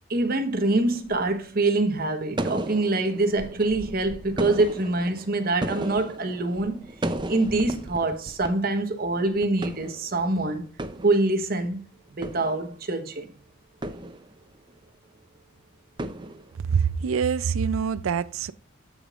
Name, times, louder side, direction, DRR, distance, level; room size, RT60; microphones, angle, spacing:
voice 1, 0.1-6.9 7.3-10.7 11.0-11.8 12.2-13.3, right 2 dB, 45° right, 1.1 m, -25 dB
sound 1, 0.6-1.4 2.4-8.5 8.7-8.8 9.3-10.4 10.6-11.7 12.1-13.1 13.8-14.7 16.0-17.0, right 1 dB, 25° right, 0.5 m, -35 dB
voice 2, 16.7-18.5, right 6 dB, 85° right, 0.5 m, -25 dB
15.0 x 5.1 x 2.5 m
head